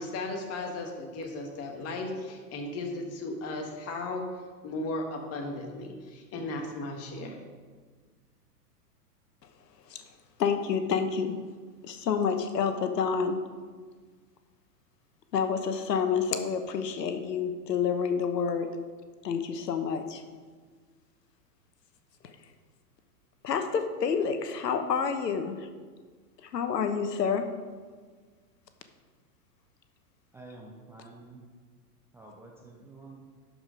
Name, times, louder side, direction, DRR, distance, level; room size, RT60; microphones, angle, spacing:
voice 1, 0.0-4.2 4.6-7.4, left 2 dB, 30° left, 2 dB, 1.7 m, -36 dB
voice 2, 10.4-11.4 11.8-13.4 15.3-18.7 19.2-20.2 23.4-25.7 26.4-27.5, left 6 dB, 85° left, 8 dB, 1.1 m, -28 dB
voice 3, 30.3-31.4 32.1-33.3, right 2 dB, 5° right, -2 dB, 0.4 m, -49 dB
11.5 x 4.9 x 5.1 m, 1.5 s
hypercardioid pair, 120°, 48 cm